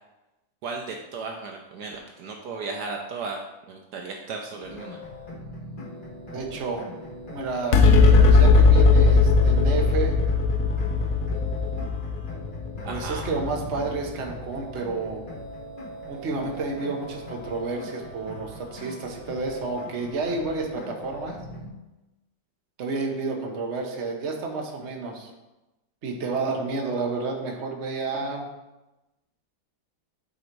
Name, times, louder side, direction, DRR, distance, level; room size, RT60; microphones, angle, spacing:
voice 1, 0.6-3.4 3.7-5.0 12.8-13.3, right 4 dB, 70° right, 2 dB, 1.2 m, -35 dB
sound 1, 4.6-21.7, equal, 30° left, 1.7 m, -40 dB
voice 2, 6.3-6.9 7.3-7.8 8.2-10.1 12.9-15.2 16.1-21.4 22.8-25.3 26.0-28.5, right 3 dB, 45° right, 1 dB, 1.2 m, -30 dB
sound 2, 7.7-14.4, left 4 dB, 65° left, 0.9 m, -18 dB
8.7 x 4.0 x 4.6 m, 1.0 s
omnidirectional pair, 1.9 m